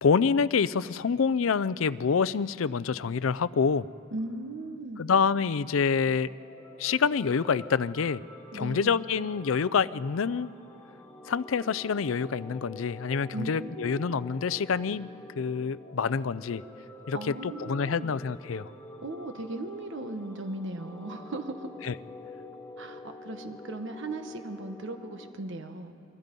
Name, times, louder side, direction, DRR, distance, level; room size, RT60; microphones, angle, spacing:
voice 1, 0.0-3.9 5.0-6.3 6.8-8.2 8.5-10.5 11.3-15.1 15.4-16.6 17.1-18.7 21.8-21.9, left 5 dB, 75° left, 17 dB, 0.5 m, -27 dB
voice 2, 4.1-5.0 8.5-9.0 13.3-14.2 17.1-18.1 19.0-21.7 22.8-25.9, right 2 dB, 65° right, 6 dB, 1.3 m, -37 dB
sound 1, 6.0-25.3, left 2 dB, 10° left, 2.1 m, -47 dB
29.5 x 23.5 x 5.3 m, 2.5 s
head